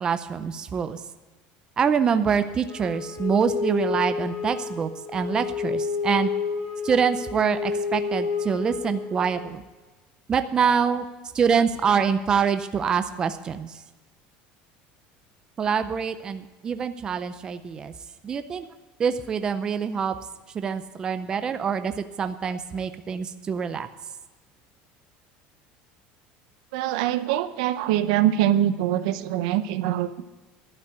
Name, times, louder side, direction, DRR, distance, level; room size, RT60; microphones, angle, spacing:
voice 1, 0.0-1.0 1.8-6.3 6.8-9.6 10.3-11.0 11.3-13.7 15.6-17.9 18.2-18.7 19.0-20.1 20.5-23.9, right 6 dB, 20° right, 10 dB, 0.5 m, -25 dB
Wind instrument woodwind instrument, 2.7-9.5, left 5 dB, 90° left, 3.5 m, -30 dB
voice 2, 26.7-30.2, right 12 dB, 85° right, 12 dB, 0.6 m, -23 dB
11.5 x 5.7 x 9.1 m, 1.2 s
cardioid pair, 170°, 4 cm